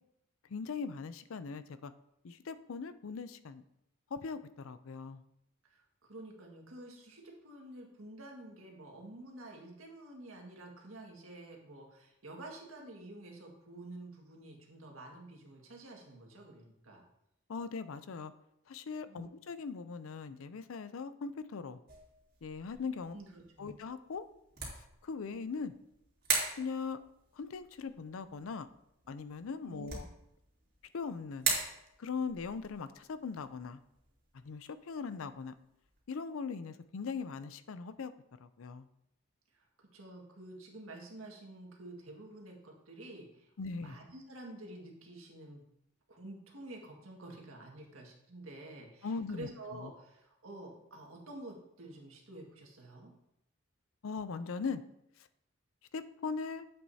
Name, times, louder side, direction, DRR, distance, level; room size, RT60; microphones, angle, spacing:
voice 1, 0.5-1.9 2.2-3.6 4.1-5.2 17.5-18.3 18.7-21.8 22.4-23.2 23.6-24.2 25.0-25.7 26.6-27.0 27.4-28.7 29.1-30.1 30.9-31.5 32.0-33.8 34.4-35.5 36.1-38.1 38.4-38.9 43.6-44.0 49.0-49.9 54.0-54.8 55.9-56.6, left 5 dB, 75° left, 13 dB, 0.5 m, -40 dB
voice 2, 5.6-17.0 19.1-19.3 23.1-23.8 29.6-30.0 39.5-45.6 46.1-53.1, right 1 dB, 75° right, 0 dB, 1.8 m, -49 dB
sound 1, 21.9-36.0, right 5 dB, 45° right, 2.4 m, -42 dB
10.0 x 7.7 x 2.8 m, 0.81 s
head